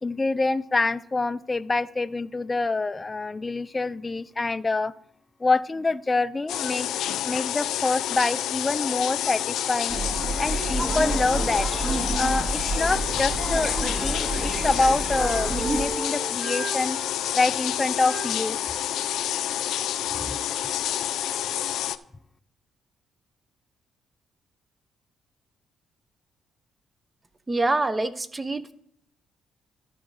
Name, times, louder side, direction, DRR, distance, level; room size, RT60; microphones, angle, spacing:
voice 1, 0.0-4.9 5.4-6.9 7.2-10.0 10.4-11.7 12.1-17.0 17.3-18.6 20.2-20.4, left 3 dB, 25° left, 14 dB, 0.4 m, -26 dB
sound 1, 6.5-22.0, left 11 dB, 80° left, 0.4 m, -29 dB
sound 2, 9.9-15.8, right 2 dB, 40° right, 1.9 m, -29 dB
sound 3, 11.4-21.1, right 3 dB, 60° right, 4.4 m, -40 dB
voice 2, 27.5-28.7, right 2 dB, 20° right, 12 dB, 0.7 m, -25 dB
13.5 x 5.1 x 4.8 m, 0.67 s
cardioid pair, 90°, 0 cm